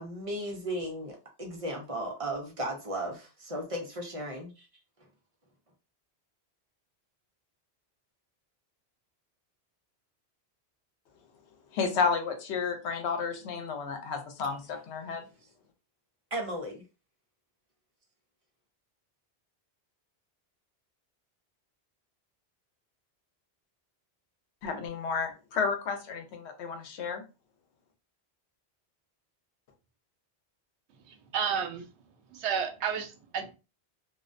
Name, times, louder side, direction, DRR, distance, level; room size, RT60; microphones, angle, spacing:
voice 1, 0.0-4.7 16.3-16.8, right 1 dB, 45° right, 0.5 m, -35 dB
voice 2, 11.7-15.2 24.6-27.2, left 5 dB, 85° left, 0.9 m, -31 dB
voice 3, 31.1-31.8 32.3-33.5, right 7 dB, 85° right, 0.9 m, -31 dB
2.4 x 2.1 x 2.4 m
omnidirectional pair, 1.1 m